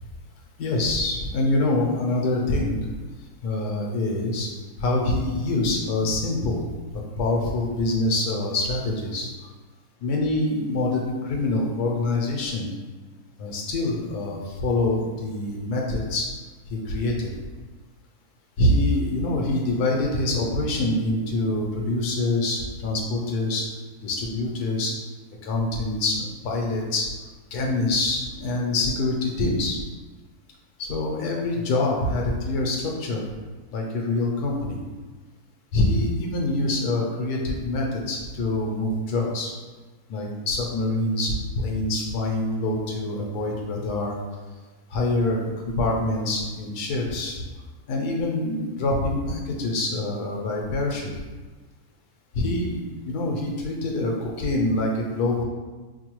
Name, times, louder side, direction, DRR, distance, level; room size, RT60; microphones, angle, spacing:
voice 1, 0.6-2.8 3.4-4.5 4.8-6.6 6.9-9.3 10.0-12.7 13.4-16.3 16.7-17.3 18.6-23.7 24.0-24.9 25.4-27.1 27.5-29.8 30.8-33.2 33.7-34.8 35.7-39.5 40.1-44.2 44.9-47.4 47.9-51.1 52.3-55.4, left 2 dB, 80° left, 0 dB, 1.2 m, -25 dB
4.8 x 2.3 x 3.0 m, 1.3 s
omnidirectional pair, 1.6 m